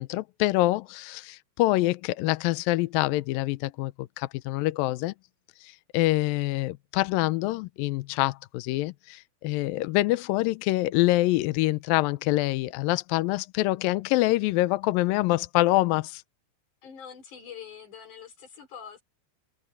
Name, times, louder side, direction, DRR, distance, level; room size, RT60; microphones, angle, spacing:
voice 1, 0.0-5.1 5.6-16.2, left 18 dB, 90° left, 2.0 m, -25 dB
voice 2, 16.8-19.0, left 7 dB, 45° left, 5.5 m, -44 dB
omnidirectional pair, 5.0 m